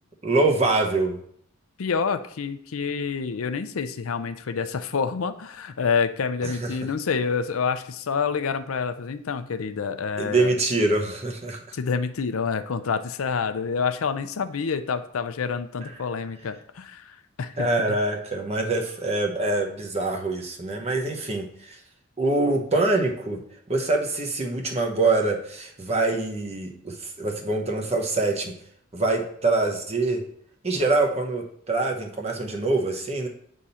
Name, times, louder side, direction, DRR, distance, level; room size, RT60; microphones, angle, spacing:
voice 1, 0.2-1.2 6.4-6.7 10.2-11.8 17.6-21.8 22.2-23.4 23.7-28.5 28.9-30.2 30.6-33.3, right 2 dB, 30° right, 1 dB, 1.1 m, -24 dB
voice 2, 1.8-10.6 11.7-18.0, left 5 dB, 80° left, 10 dB, 0.5 m, -28 dB
8.3 x 3.7 x 4.3 m, 0.65 s
head